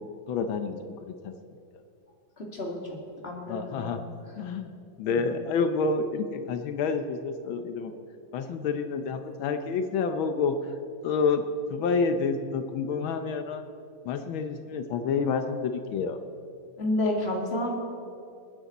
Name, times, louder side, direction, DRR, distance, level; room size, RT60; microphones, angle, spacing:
voice 1, 0.3-0.9 1.2-1.3 3.5-4.0 4.4-4.7 5.0-7.9 8.3-10.5 11.0-11.4 11.7-13.6 14.1-16.2, left 5 dB, 85° left, 7 dB, 1.6 m, -28 dB
voice 2, 2.4-2.8 3.2-3.9 4.3-4.4 5.1-5.2 16.8-17.7, left 1 dB, 30° left, -1 dB, 2.5 m, -30 dB
28.0 x 9.7 x 4.2 m, 2.5 s
omnidirectional pair, 2.2 m